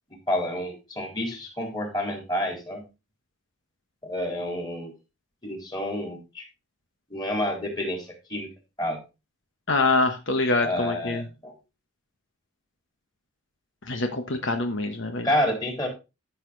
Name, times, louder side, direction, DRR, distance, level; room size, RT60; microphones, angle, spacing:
voice 1, 0.3-2.8 4.0-4.9 5.4-6.5 7.1-8.5 8.8-9.0 10.6-11.5 15.2-15.9, left 1 dB, 20° left, 1 dB, 4.0 m, -29 dB
voice 2, 9.7-11.3 13.9-15.3, left 3 dB, 65° left, 6 dB, 1.2 m, -25 dB
13.5 x 6.6 x 3.9 m, 0.28 s
head